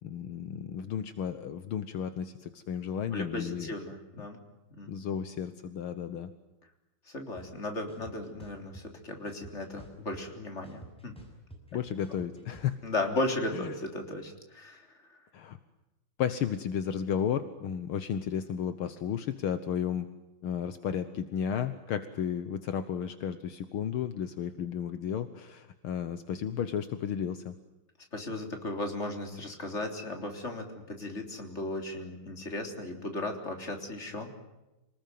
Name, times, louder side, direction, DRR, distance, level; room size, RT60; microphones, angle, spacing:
voice 1, 0.0-3.7 4.9-6.3 11.7-12.7 13.5-13.8 15.3-15.6 16.2-20.1 20.4-27.5, left 8 dB, 75° left, 11 dB, 1.9 m, -33 dB
voice 2, 3.1-4.4 4.8-5.0 7.1-11.1 12.8-14.9 28.1-34.5, left 2 dB, 30° left, 4 dB, 3.9 m, -36 dB
sound 1, 7.4-7.5 7.9-8.8 9.3-10.3 10.6-12.7, right 1 dB, ahead, 6.3 m, -49 dB
27.5 x 20.0 x 9.3 m, 0.99 s
omnidirectional pair, 2.4 m